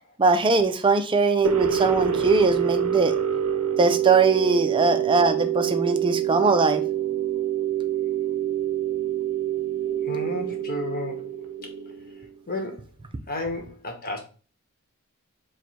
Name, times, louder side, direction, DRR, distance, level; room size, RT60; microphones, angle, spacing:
voice 1, 0.2-3.2 3.8-6.8, right 3 dB, 25° right, 0.4 m, -21 dB
sound 1, 1.4-12.3, right 10 dB, 75° right, 0.5 m, -26 dB
voice 2, 10.0-11.4 12.5-12.9 13.3-14.2, left 2 dB, 45° left, 1.0 m, -32 dB
4.7 x 2.2 x 4.1 m
head